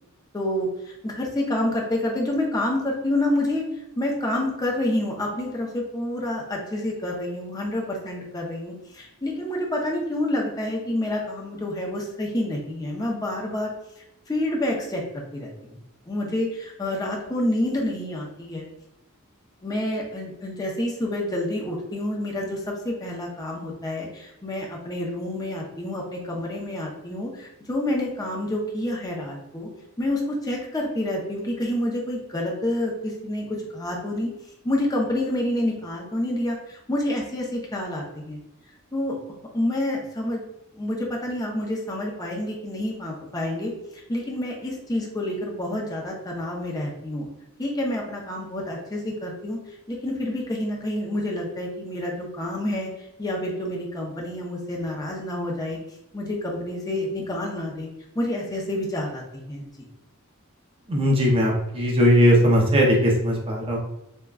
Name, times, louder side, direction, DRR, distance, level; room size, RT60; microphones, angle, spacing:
voice 1, 0.3-3.6 4.0-13.7 14.3-15.8 16.1-18.7 19.6-29.7 30.0-34.3 34.6-38.4 38.9-39.2 39.5-40.4 40.7-47.3 47.6-49.6 49.9-52.9 53.2-55.8 56.1-57.9 58.1-59.7, left 1 dB, 15° left, -2 dB, 0.6 m, -28 dB
voice 2, 60.9-63.8, equal, 25° right, -1 dB, 0.5 m, -19 dB
3.5 x 2.2 x 2.2 m, 0.90 s
head